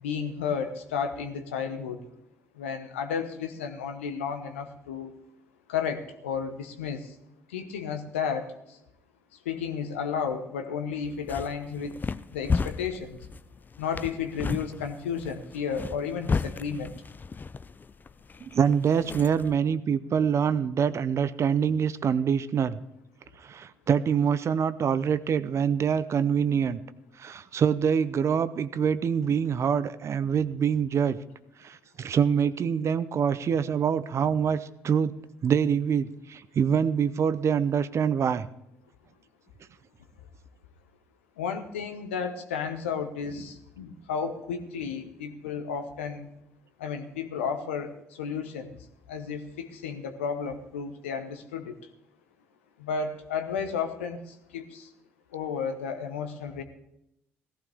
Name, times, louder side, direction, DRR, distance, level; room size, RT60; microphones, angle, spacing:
voice 1, 0.0-2.0 2.6-5.1 5.7-7.0 7.5-8.5 9.4-12.0 12.3-13.2 13.8-16.9 41.4-46.3 46.8-47.9 48.2-48.7 49.1-51.7 52.8-54.2 54.5-54.9 55.3-56.6, left 6 dB, 75° left, 7 dB, 1.1 m, -32 dB
sound 1, 11.0-19.6, left 4 dB, 30° left, 0.5 m, -34 dB
voice 2, 18.4-22.8 23.4-26.8 27.2-31.2 31.6-35.1 35.4-38.5, right 7 dB, 45° right, 14 dB, 0.7 m, -25 dB
16.5 x 15.0 x 3.5 m, 0.78 s
figure-of-eight pair, 45°, 7 cm